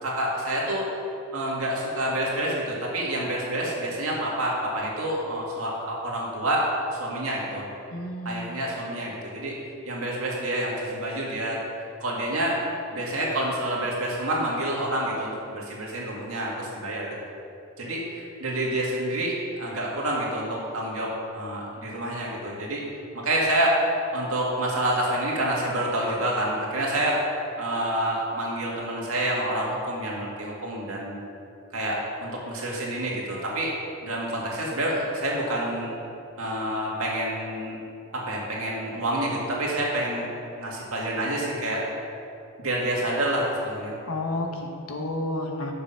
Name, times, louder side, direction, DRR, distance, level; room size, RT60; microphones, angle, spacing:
voice 1, 0.0-0.9 1.3-7.7 8.2-9.6 9.9-11.6 12.0-12.6 12.9-17.2 17.8-22.8 23.1-23.8 24.1-27.2 27.6-31.2 31.7-33.7 34.0-35.9 36.4-37.8 38.1-40.3 40.6-41.8 42.6-44.0, right 1 dB, 75° right, -4 dB, 2.1 m, -28 dB
voice 2, 7.9-8.6 44.0-45.7, left 2 dB, 80° left, 2 dB, 1.1 m, -31 dB
7.0 x 6.8 x 5.7 m, 2.6 s
head